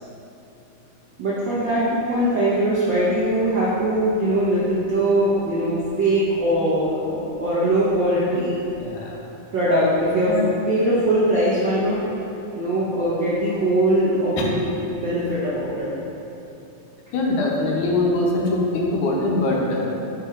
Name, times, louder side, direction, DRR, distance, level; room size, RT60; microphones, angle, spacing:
voice 1, 1.2-8.6 9.5-10.3 10.7-12.0 12.5-15.9, right 1 dB, 85° right, -9 dB, 1.0 m, -21 dB
voice 2, 8.8-9.2 10.3-10.4 14.4-14.5 17.1-19.9, left 2 dB, 80° left, -2 dB, 2.3 m, -22 dB
5.2 x 4.4 x 5.0 m, 2.8 s
omnidirectional pair, 3.5 m